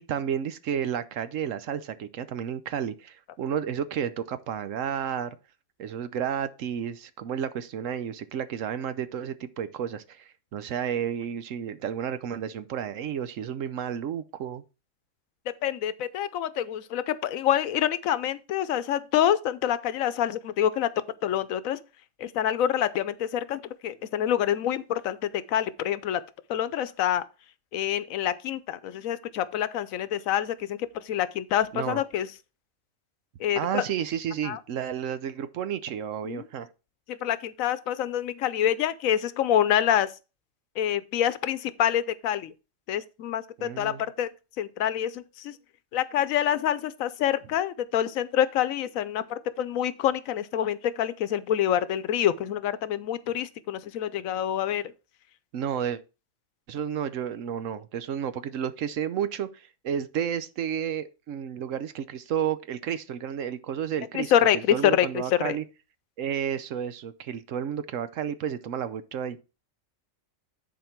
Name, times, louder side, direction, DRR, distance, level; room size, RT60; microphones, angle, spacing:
voice 1, 0.0-5.4 5.8-14.6 31.7-32.0 33.6-36.7 43.6-44.0 55.5-56.0 56.7-64.3 64.7-65.6 66.2-69.4, right 8 dB, 75° right, 1.1 m, -31 dB
voice 2, 15.6-20.9 21.2-21.8 22.2-26.2 26.5-27.2 27.7-32.3 33.4-33.8 34.4-34.6 36.2-36.5 37.1-40.1 40.8-42.5 42.9-44.3 44.6-45.6 45.9-54.8 64.1-65.6, left 10 dB, 90° left, 1.1 m, -26 dB
10.5 x 4.4 x 4.4 m
omnidirectional pair, 1.4 m